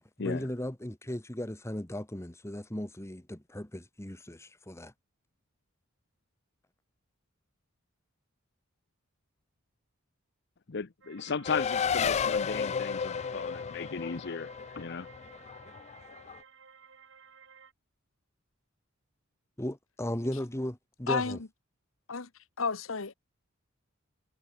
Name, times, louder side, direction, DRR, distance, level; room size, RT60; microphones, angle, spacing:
voice 1, 0.0-4.9 19.6-21.4, left 1 dB, 15° left, 1.6 m, -36 dB
voice 2, 10.7-14.5 14.8-15.1, left 5 dB, 55° left, 0.7 m, -35 dB
sound 1, 11.0-17.7, right 6 dB, 65° right, 3.2 m, -56 dB
Race car auto racing, 11.4-16.4, left 6 dB, 30° left, 0.3 m, -32 dB
voice 3, 21.1-21.5 22.1-22.3 22.6-23.1, left 4 dB, 75° left, 1.3 m, -31 dB
head